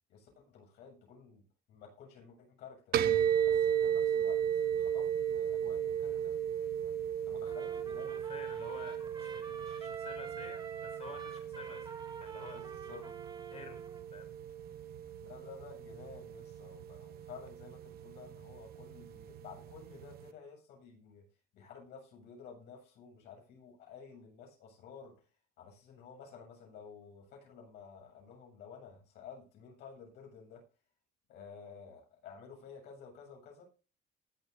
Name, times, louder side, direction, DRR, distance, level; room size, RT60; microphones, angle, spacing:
voice 1, 0.1-3.0 3.5-6.4 6.8-8.2 12.5-13.1 15.2-21.2 21.5-25.1 25.6-30.6 31.3-33.6, left 6 dB, 80° left, 7.5 m, -52 dB
sound 1, 2.9-20.3, right 9 dB, 65° right, 1.1 m, -35 dB
Trumpet, 7.5-14.1, right 4 dB, 30° right, 3.5 m, -48 dB
voice 2, 8.1-12.6 13.5-13.8 14.1-14.4, left 5 dB, 40° left, 4.9 m, -51 dB
19.5 x 8.4 x 2.7 m
cardioid pair, 110°, 17 cm